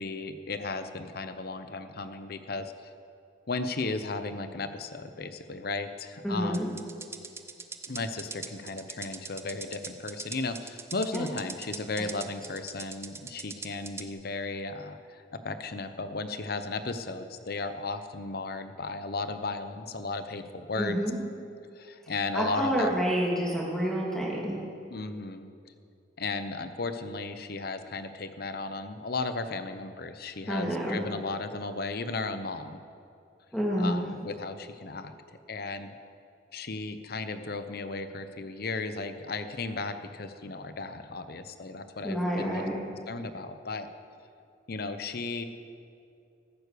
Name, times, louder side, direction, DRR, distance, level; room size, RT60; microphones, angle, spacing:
voice 1, 0.0-2.7 3.5-6.8 7.9-21.0 21.8-22.9 24.9-25.5 26.2-32.8 33.8-35.1 35.5-35.9 36.5-42.7 43.1-43.9 44.7-45.4, left 3 dB, 55° left, 10 dB, 0.8 m, -35 dB
voice 2, 6.2-6.7 11.1-11.3 12.0-12.1 20.8-21.2 22.3-24.6 30.5-31.0 33.5-34.0 42.0-42.7, equal, 5° left, -4 dB, 2.6 m, -28 dB
sound 1, 6.5-14.1, right 4 dB, 15° right, 0.6 m, -41 dB
14.5 x 9.6 x 6.8 m, 2.5 s
head